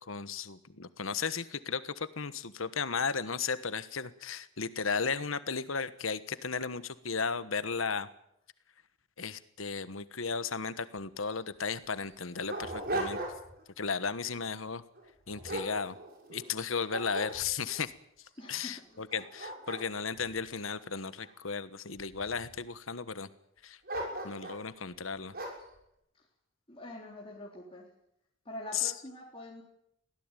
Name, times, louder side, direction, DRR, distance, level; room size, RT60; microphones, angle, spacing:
voice 1, 0.1-8.1 9.2-13.2 13.8-14.8 15.3-16.0 16.3-17.9 18.5-23.3 23.6-23.8 24.2-25.3 28.7-28.9, left 5 dB, 90° left, 14 dB, 1.3 m, -35 dB
Dog, 11.3-11.4 12.0-13.6 14.1-14.4 15.0-16.5 16.9-17.8 18.4-18.5 19.0-21.3 21.9-22.6 23.9-24.7 25.3-25.7, right 2 dB, 50° right, 6.6 m, -39 dB
voice 2, 18.4-19.0 26.7-27.9 28.5-29.6, left 1 dB, 30° left, -2 dB, 3.8 m, -45 dB
22.5 x 17.0 x 9.2 m, 0.77 s
head